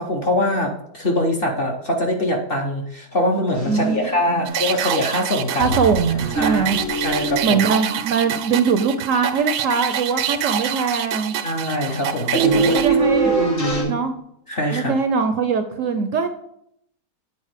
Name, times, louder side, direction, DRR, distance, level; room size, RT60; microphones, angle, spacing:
voice 1, 0.0-5.8 6.3-6.6 7.0-7.4 11.4-13.0 13.2-14.0 14.5-14.9, left 1 dB, 45° left, 1 dB, 0.9 m, -23 dB
sound 1, 3.6-4.2 4.4-4.5 5.6-8.7 12.3-13.8, right 3 dB, 65° left, 4.1 m, -23 dB
voice 2, 3.6-4.0 4.3-4.5 5.6-6.8 7.4-11.4 12.7-13.4 13.9-14.2 14.7-16.3, right 5 dB, 65° right, 7 dB, 0.8 m, -21 dB
sound 2, 4.5-12.9, right 10 dB, 85° right, 1.2 m, -26 dB
8.6 x 4.1 x 4.9 m, 0.74 s
omnidirectional pair, 1.7 m